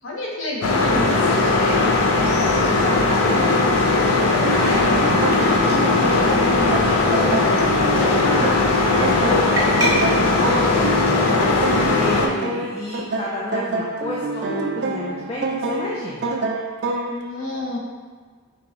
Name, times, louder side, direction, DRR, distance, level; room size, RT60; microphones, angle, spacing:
voice 1, 0.0-1.0 17.1-17.8, left 1 dB, 60° left, -3 dB, 0.9 m, -29 dB
sound 1, 0.6-12.3, left 3 dB, 80° left, 0.6 m, -18 dB
voice 2, 1.6-2.0 2.3-16.4, left 1 dB, 25° left, -4 dB, 0.4 m, -31 dB
sound 2, 4.4-17.2, right 3 dB, 50° right, 0.4 m, -27 dB
sound 3, 5.4-5.8 6.1-6.2 6.5-7.4 7.7-8.1 9.6-9.9, right 1 dB, 15° right, 0.8 m, -29 dB
5.9 x 2.5 x 3.0 m, 1.5 s
head